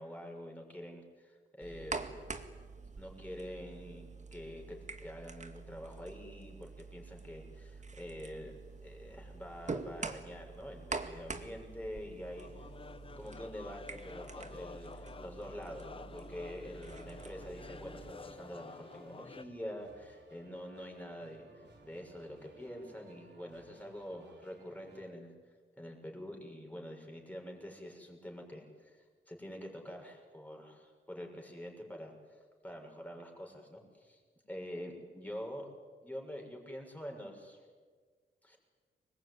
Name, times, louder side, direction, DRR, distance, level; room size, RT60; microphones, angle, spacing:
voice 1, 0.0-2.2 3.0-12.5 13.2-25.3 25.8-34.2 34.5-35.7 36.0-37.6 38.4-38.6, equal, 5° left, 1 dB, 6.5 m, -46 dB
sound 1, 1.6-18.1, right 4 dB, 35° right, 2.1 m, -46 dB
sound 2, 7.8-8.4 8.7-8.8 9.2-19.4, left 4 dB, 25° left, 0.7 m, -51 dB
sound 3, 16.8-25.1, right 3 dB, 60° right, 3.9 m, -60 dB
25.0 x 21.0 x 9.7 m, 1.5 s
cardioid pair, 95°, 20 cm